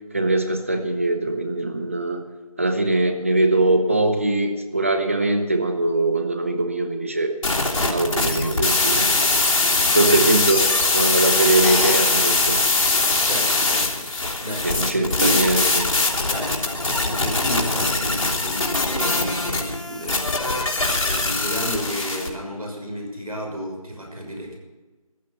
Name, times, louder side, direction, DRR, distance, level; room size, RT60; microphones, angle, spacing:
voice 1, 0.1-2.2 2.6-7.3 7.9-9.1 9.4-9.5 9.9-12.6 14.6-15.9, right 2 dB, 20° right, 6 dB, 1.0 m, -22 dB
sound 1, 7.4-22.3, left 2 dB, 65° left, 3.3 m, -22 dB
voice 2, 13.2-15.5 16.2-24.6, equal, 80° right, 1 dB, 6.3 m, -32 dB
14.5 x 11.0 x 6.9 m, 1.2 s
figure-of-eight pair, 170°, 19 cm